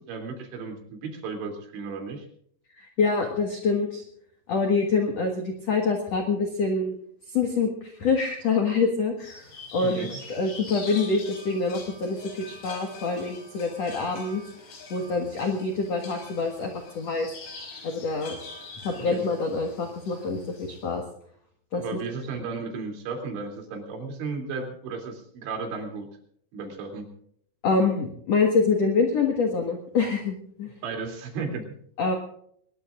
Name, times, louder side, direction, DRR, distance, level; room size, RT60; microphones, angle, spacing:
voice 1, 0.0-2.3 9.8-10.2 19.0-19.2 21.7-26.1 26.5-27.1 30.8-31.7, right 4 dB, 90° right, 3 dB, 5.3 m, -34 dB
voice 2, 2.8-4.0 4.5-7.0 7.3-14.4 14.9-17.3 17.8-18.4 18.8-21.0 21.7-21.8 27.6-30.7 32.0-32.1, left 4 dB, 55° left, 3 dB, 2.0 m, -26 dB
sound 1, 9.2-20.9, left 3 dB, 85° left, 7.2 m, -44 dB
23.0 x 20.0 x 2.5 m, 0.66 s
omnidirectional pair, 5.0 m